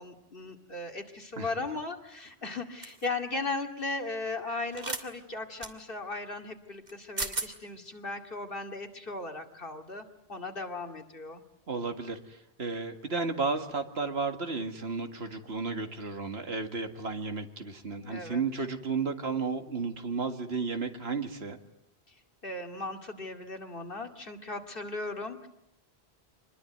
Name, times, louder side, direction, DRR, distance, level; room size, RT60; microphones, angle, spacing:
voice 1, 0.0-11.4 18.0-18.4 22.1-22.2 22.4-25.5, left 3 dB, 55° left, 4 dB, 2.6 m, -37 dB
sound 1, 2.8-3.0 4.7-5.0 5.6-5.7 6.9-7.0 7.2-7.5, right 2 dB, 45° right, 2.2 m, -34 dB
voice 2, 11.7-21.6, right 4 dB, 75° right, 6 dB, 2.2 m, -33 dB
26.0 x 21.0 x 9.3 m, 0.82 s
omnidirectional pair, 1.1 m